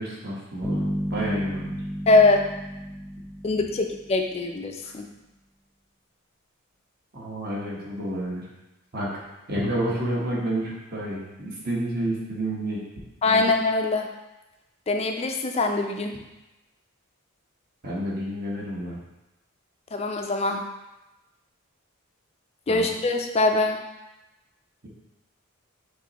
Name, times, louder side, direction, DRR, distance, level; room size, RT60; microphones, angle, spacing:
voice 1, 0.0-1.8 4.8-4.9 7.1-8.4 8.9-9.1 9.5-12.8 13.3-13.4 17.8-19.0 22.7-22.9, right 1 dB, 45° right, -5 dB, 1.2 m, -30 dB
Bass guitar, 0.6-4.4, equal, ahead, 0.8 m, -32 dB
voice 2, 2.1-2.4 3.4-5.1 13.2-14.1 14.9-16.2 19.9-20.6 22.7-23.8, left 3 dB, 30° left, 4 dB, 0.3 m, -22 dB
6.0 x 3.0 x 2.9 m, 1.0 s
head